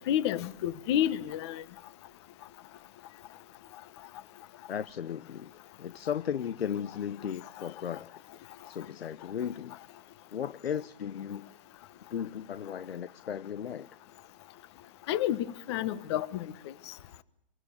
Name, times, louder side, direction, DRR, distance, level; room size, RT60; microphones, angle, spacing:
voice 1, 0.1-1.6 15.1-16.5 16.9-17.0, left 11 dB, 25° left, 1.2 m, -30 dB
voice 2, 4.7-5.5 5.8-8.1 8.7-9.8 10.3-11.5 12.1-13.9, left 8 dB, 80° left, 1.0 m, -35 dB
28.0 x 23.5 x 7.2 m
hypercardioid pair, 160°, 31 cm